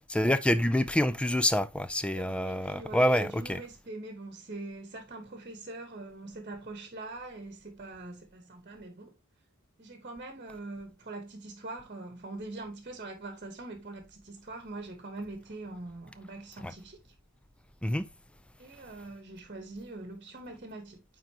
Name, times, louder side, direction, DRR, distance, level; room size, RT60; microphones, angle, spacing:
voice 1, 0.1-3.6 16.6-16.7 17.8-18.1, left 1 dB, 5° left, 0.4 m, -27 dB
voice 2, 2.1-9.1 9.8-17.0 18.6-21.0, right 2 dB, 40° right, 1.2 m, -43 dB
9.3 x 3.8 x 2.8 m
head